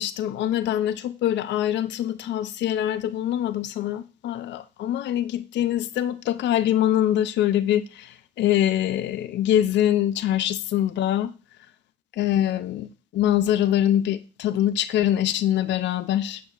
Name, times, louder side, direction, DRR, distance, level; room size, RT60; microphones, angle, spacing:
voice 1, 0.0-11.3 12.2-16.4, left 11 dB, 65° left, 0.4 m, -24 dB
7.1 x 6.2 x 2.4 m
cardioid pair, 90°, 20 cm